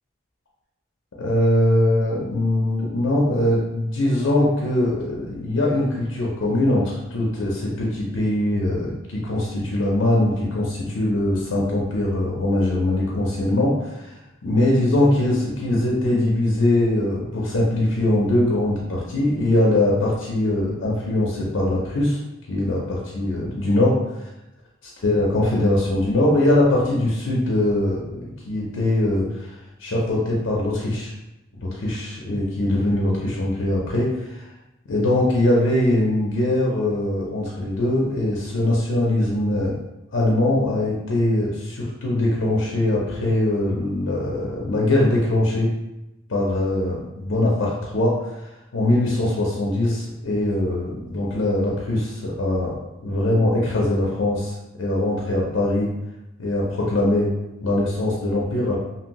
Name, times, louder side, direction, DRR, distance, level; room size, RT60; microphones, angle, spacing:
voice 1, 1.2-14.1 14.4-22.2 22.5-24.3 25.0-29.5 29.8-31.1 31.6-34.4 34.9-39.7 40.1-45.7 46.3-52.7 53.0-55.9 56.4-57.3 57.6-58.8, left 1 dB, 75° left, -3 dB, 0.6 m, -22 dB
2.8 x 2.6 x 3.0 m, 0.97 s
head